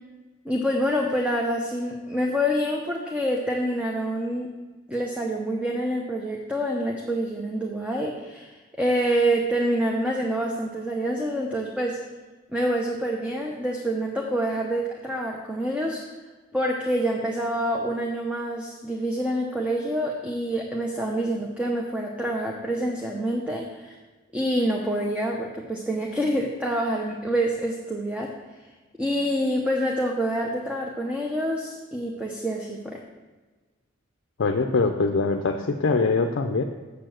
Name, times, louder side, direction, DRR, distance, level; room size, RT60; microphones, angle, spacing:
voice 1, 0.4-4.5 4.9-12.0 12.5-16.0 16.5-23.9 24.3-28.3 29.0-33.0, equal, 5° right, 0 dB, 0.7 m, -27 dB
voice 2, 34.4-36.6, left 3 dB, 60° left, 4 dB, 0.5 m, -23 dB
7.0 x 6.8 x 7.6 m, 1.3 s
head